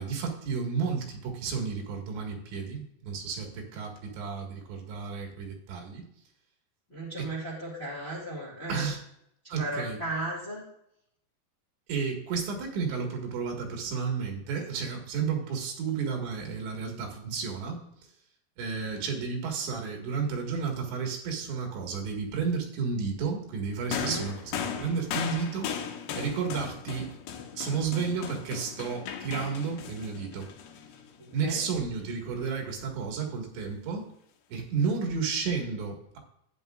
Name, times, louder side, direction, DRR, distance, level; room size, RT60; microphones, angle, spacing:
voice 1, 0.0-6.1 7.2-7.3 8.7-9.0 9.5-10.0 11.9-18.0 18.6-25.7 26.2-27.1 27.5-30.5 31.3-34.1 34.5-36.2, right 5 dB, 90° right, 1 dB, 4.1 m, -32 dB
voice 2, 6.9-8.9 9.4-10.6 24.0-24.3 26.2-26.3 31.4-31.6, right 2 dB, 25° left, -4 dB, 1.3 m, -35 dB
sound 1, 23.9-31.4 32.4-32.5, left 8 dB, 75° left, 2.6 m, -37 dB
12.5 x 9.4 x 2.4 m, 0.74 s
omnidirectional pair, 5.0 m